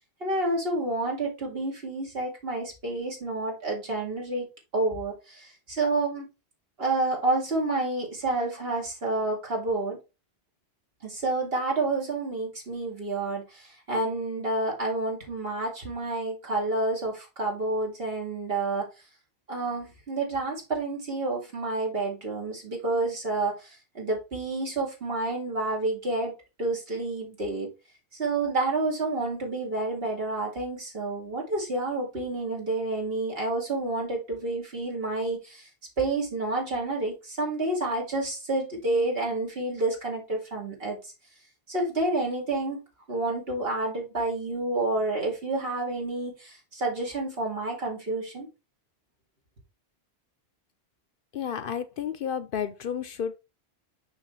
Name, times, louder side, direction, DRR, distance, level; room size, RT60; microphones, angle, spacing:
voice 1, 0.2-6.3 6.8-10.0 11.0-18.9 19.5-26.3 26.6-27.7 28.1-35.7 36.0-41.1 41.7-42.8 43.1-48.5, right 2 dB, 65° right, 2.6 m, -29 dB
voice 2, 51.3-53.3, left 8 dB, 60° left, 0.8 m, -31 dB
6.4 x 5.7 x 3.2 m
omnidirectional pair, 1.1 m